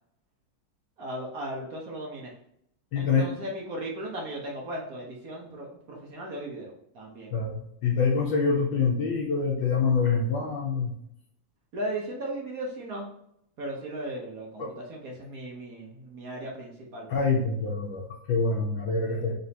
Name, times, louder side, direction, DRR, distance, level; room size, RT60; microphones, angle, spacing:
voice 1, 1.0-2.3 3.0-7.3 11.7-13.1 13.6-17.1, right 1 dB, 55° right, -1 dB, 1.0 m, -36 dB
voice 2, 2.9-3.3 7.3-10.9 14.6-14.7 17.1-19.4, left 4 dB, 70° left, 0 dB, 1.3 m, -26 dB
3.9 x 3.7 x 2.8 m, 0.74 s
omnidirectional pair, 2.3 m